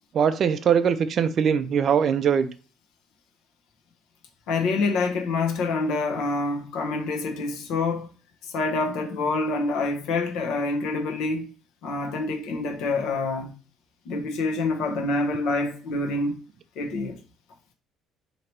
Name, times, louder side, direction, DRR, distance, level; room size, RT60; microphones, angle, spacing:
voice 1, 0.1-2.5, right 7 dB, 40° right, 0.3 m, -21 dB
voice 2, 4.5-8.1 8.4-11.4 11.8-13.5 14.0-16.4 16.8-17.1, left 3 dB, 70° left, 0.9 m, -26 dB
3.0 x 2.8 x 4.5 m
cardioid pair, 160°, 0 cm